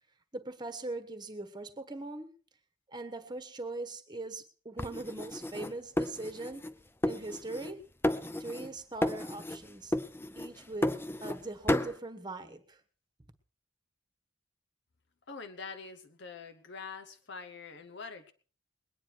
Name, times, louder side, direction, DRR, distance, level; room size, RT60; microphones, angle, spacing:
voice 1, 0.3-2.3 2.9-6.7 7.0-7.8 8.4-9.9 10.4-10.9 11.2-12.8, right 2 dB, 25° right, 10 dB, 1.3 m, -41 dB
sound 1, 4.8-6.7 7.0-7.8 8.0-8.7 9.0-9.6 9.9-11.4 11.7-12.0, left 1 dB, 10° left, 0.6 m, -32 dB
voice 2, 15.3-18.3, left 4 dB, 65° left, 6 dB, 1.0 m, -45 dB
21.0 x 9.7 x 4.6 m, 0.40 s
head